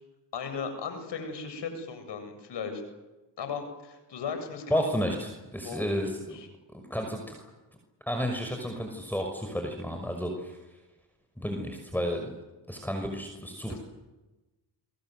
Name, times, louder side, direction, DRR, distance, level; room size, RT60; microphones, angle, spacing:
voice 1, 0.3-2.8 3.4-4.9 5.6-5.8 6.3-6.5 13.7-13.8, left 5 dB, 80° left, 7 dB, 7.8 m, -36 dB
voice 2, 4.7-6.4 6.7-7.4 8.1-10.6 11.4-12.3 12.7-13.8, equal, 5° left, 4 dB, 6.0 m, -32 dB
28.5 x 23.0 x 8.0 m, 1.1 s
cardioid pair, 55°, 42 cm